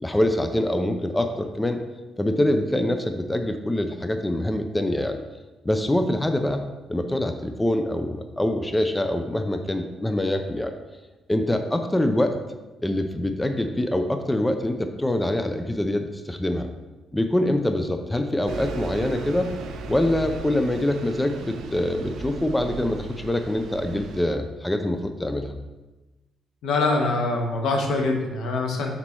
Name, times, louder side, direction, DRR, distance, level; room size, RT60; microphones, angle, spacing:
voice 1, 0.0-1.8 2.2-5.2 5.7-6.6 6.9-10.7 11.3-12.4 12.8-16.7 17.1-19.5 19.9-25.5, left 1 dB, 10° left, 6 dB, 0.4 m, -24 dB
Bus, 18.5-24.2, right 3 dB, 75° right, 0.5 m, -36 dB
voice 2, 26.6-29.0, left 3 dB, 80° left, 2 dB, 1.1 m, -24 dB
6.1 x 4.2 x 4.4 m, 1.1 s
cardioid pair, 145°, 0 cm